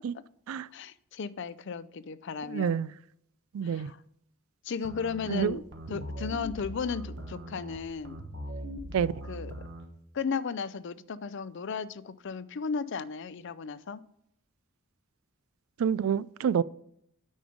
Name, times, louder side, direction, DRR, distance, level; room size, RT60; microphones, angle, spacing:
voice 1, 0.7-2.9 3.6-4.0 4.6-5.6 5.9-8.2 9.3-9.5 10.1-14.0, left 5 dB, 60° left, 0.5 m, -35 dB
voice 2, 2.5-2.9 3.5-3.9 5.3-5.6 5.9-6.0 8.9-9.1 15.8-16.6, right 7 dB, 85° right, 0.3 m, -28 dB
sound 1, 4.8-9.9, equal, 60° right, 1.3 m, -41 dB
9.3 x 5.4 x 5.1 m
head